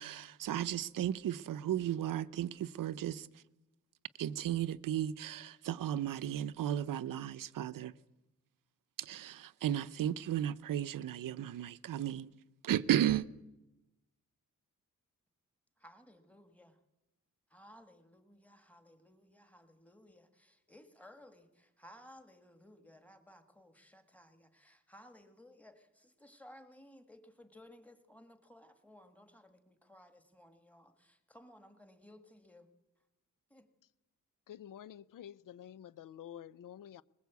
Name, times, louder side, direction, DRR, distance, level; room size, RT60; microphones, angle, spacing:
voice 1, 0.0-3.3 4.2-7.9 9.0-12.3 12.6-13.3, right 11 dB, 85° right, 0.8 m, -34 dB
voice 2, 15.8-16.8 17.5-32.7 33.5-33.7, left 1 dB, 5° left, 1.7 m, -58 dB
voice 3, 34.5-37.0, left 10 dB, 75° left, 0.7 m, -49 dB
21.0 x 21.0 x 8.3 m
wide cardioid pair, 170°, 32 cm